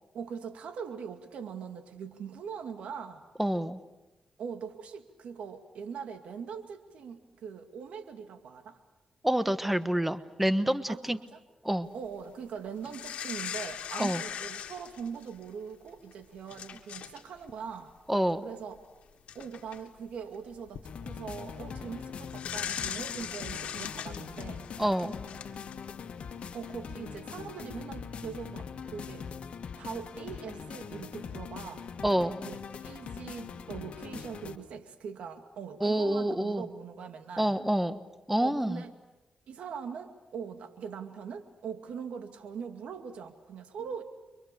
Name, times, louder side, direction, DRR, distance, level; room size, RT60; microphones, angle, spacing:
voice 1, 0.1-3.2 4.4-8.8 10.9-11.4 11.9-17.9 18.4-18.8 19.3-24.7 25.5-25.6 26.5-29.3 29.8-31.8 32.4-37.6 38.4-38.9 39.5-44.0, right 6 dB, 85° right, 7 dB, 2.3 m, -41 dB
voice 2, 3.4-3.8 9.2-11.2 11.6-11.9 14.0-14.2 18.1-18.4 24.8-25.1 32.0-32.4 35.8-36.7 37.4-38.0 38.3-38.8, right 1 dB, 5° right, 12 dB, 1.3 m, -27 dB
sound 1, 12.8-15.5 16.1-16.2 16.5-17.2 17.5-17.7 18.8-18.9 19.3-19.8 20.5-20.8 22.3-26.0 26.4-26.5, left 9 dB, 85° left, 1.9 m, -39 dB
sound 2, 20.8-34.6, left 6 dB, 70° left, 1.8 m, -42 dB
30.0 x 24.5 x 6.9 m, 1.1 s
cardioid pair, 70°, 2 cm